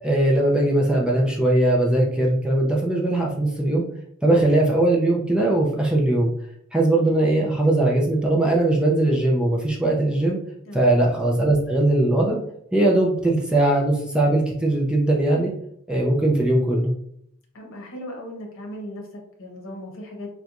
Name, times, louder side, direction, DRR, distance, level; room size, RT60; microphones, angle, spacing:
voice 1, 0.0-3.8 4.2-6.3 6.7-10.4 10.7-12.4 12.7-15.5 15.9-16.9, right 1 dB, 5° right, -2 dB, 0.4 m, -20 dB
voice 2, 17.5-20.3, left 1 dB, 60° left, 0 dB, 1.0 m, -37 dB
4.2 x 2.3 x 2.5 m, 0.69 s
head